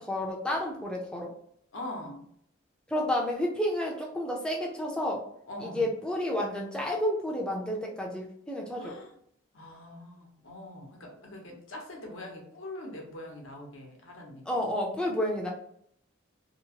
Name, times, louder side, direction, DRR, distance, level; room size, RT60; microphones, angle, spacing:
voice 1, 0.0-1.3 2.9-5.2 5.6-9.0 14.5-15.5, left 1 dB, 5° left, -1 dB, 0.4 m, -30 dB
voice 2, 1.7-2.2 5.5-5.9 8.8-9.2 9.5-14.4, left 1 dB, 70° left, 0 dB, 0.8 m, -43 dB
2.8 x 2.0 x 2.8 m, 0.68 s
head